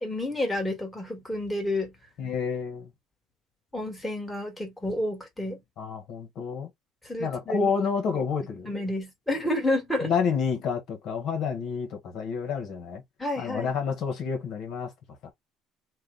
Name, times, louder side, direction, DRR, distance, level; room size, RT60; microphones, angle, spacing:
voice 1, 0.0-1.9 3.7-5.6 7.0-7.7 8.6-10.1 13.2-13.7, left 1 dB, 5° left, 1.6 m, -30 dB
voice 2, 2.2-2.9 5.8-6.7 7.2-8.7 10.0-13.0 13.4-14.9 15.2-15.3, left 6 dB, 60° left, 1.1 m, -29 dB
3.1 x 2.2 x 3.8 m
cardioid pair, 115°, 0 cm